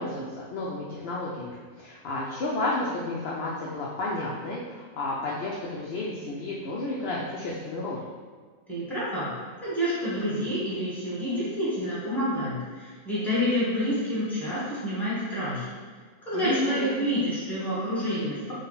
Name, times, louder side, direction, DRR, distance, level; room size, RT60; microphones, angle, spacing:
voice 1, 0.0-8.0 16.3-17.0, left 2 dB, 70° left, -4 dB, 0.6 m, -31 dB
voice 2, 8.7-9.3 9.6-15.6 16.2-18.5, equal, ahead, -11 dB, 1.1 m, -28 dB
3.7 x 2.2 x 3.9 m, 1.5 s
omnidirectional pair, 1.5 m